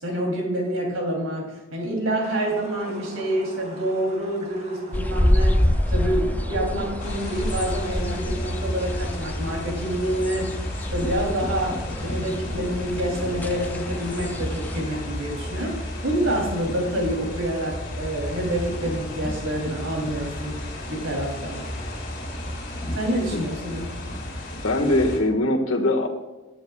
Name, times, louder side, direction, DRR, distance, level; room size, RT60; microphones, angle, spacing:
voice 1, 0.0-10.5 10.9-20.6 20.9-21.6 22.9-23.9, right 1 dB, 80° right, -1 dB, 3.0 m, -27 dB
sound 1, 2.2-7.9, right 1 dB, 35° right, 2.0 m, -42 dB
sound 2, 4.9-14.8, left 1 dB, 10° left, 0.4 m, -27 dB
sound 3, 7.0-25.2, left 1 dB, 45° left, 4.1 m, -33 dB
voice 2, 24.5-26.1, left 1 dB, 70° left, 3 dB, 1.6 m, -22 dB
23.0 x 10.0 x 2.3 m, 1.1 s
head